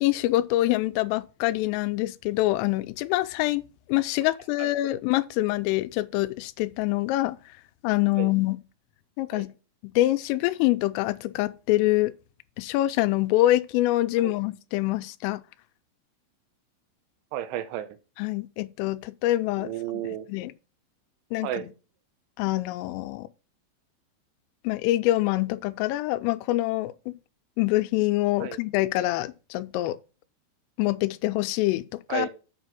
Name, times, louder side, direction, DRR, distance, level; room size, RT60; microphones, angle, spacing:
voice 1, 0.0-7.4 7.8-8.6 9.2-9.5 9.8-12.1 12.6-15.4 18.2-19.7 20.3-20.5 21.3-21.7 22.4-23.3 24.6-27.2 27.6-30.0 30.8-32.3, left 17 dB, 90° left, 3.2 m, -25 dB
voice 2, 17.3-17.9 19.6-20.3 21.4-21.7 28.4-28.6 32.1-32.3, right 12 dB, 80° right, 3.1 m, -32 dB
7.6 x 6.0 x 5.8 m
omnidirectional pair, 5.7 m